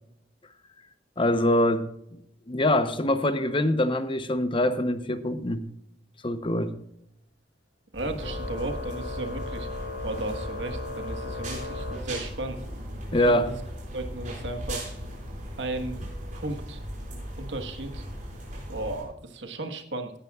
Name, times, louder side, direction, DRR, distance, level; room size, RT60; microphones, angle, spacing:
voice 1, 1.2-2.2 2.5-5.7 6.2-6.8 13.1-13.5, left 1 dB, 30° left, 11 dB, 0.8 m, -24 dB
sound 1, 7.9-19.0, equal, 45° right, 5.2 m, -38 dB
voice 2, 7.9-9.7 10.0-12.6 13.1-13.5 13.9-14.9 15.6-16.0 16.3-16.8 17.4-18.0 18.7-20.1, right 2 dB, 85° right, 5 dB, 1.4 m, -35 dB
Organ, 8.2-12.7, left 2 dB, 80° left, 5.2 m, -37 dB
17.0 x 11.0 x 2.4 m, 0.77 s
head